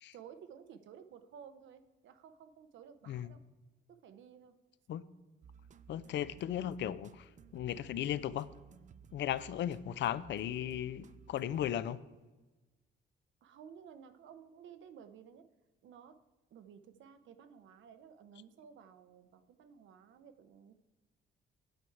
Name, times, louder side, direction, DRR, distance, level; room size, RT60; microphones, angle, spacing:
voice 1, 0.1-3.4 3.9-4.5 13.4-15.4 15.8-16.1 16.5-20.7, right 8 dB, 75° right, 0.8 m, -55 dB
sound 1, 5.4-12.2, right 7 dB, 40° right, 0.4 m, -57 dB
voice 2, 5.9-7.3 7.5-8.5 9.1-12.0, left 11 dB, 65° left, 0.5 m, -36 dB
8.9 x 7.9 x 4.6 m
cardioid pair, 90°, 20 cm